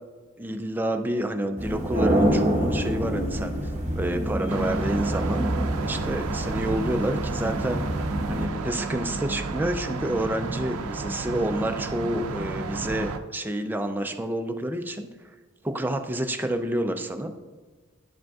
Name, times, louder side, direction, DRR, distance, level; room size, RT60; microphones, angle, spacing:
voice 1, 0.4-3.6 3.9-5.5 5.8-7.8 8.3-15.1 15.6-17.3, right 1 dB, 10° right, 6 dB, 0.4 m, -29 dB
sound 1, 1.6-8.5, equal, 30° right, 0.9 m, -27 dB
sound 2, 4.5-13.2, right 3 dB, 85° right, 0.5 m, -32 dB
9.9 x 5.1 x 2.4 m, 1.3 s
head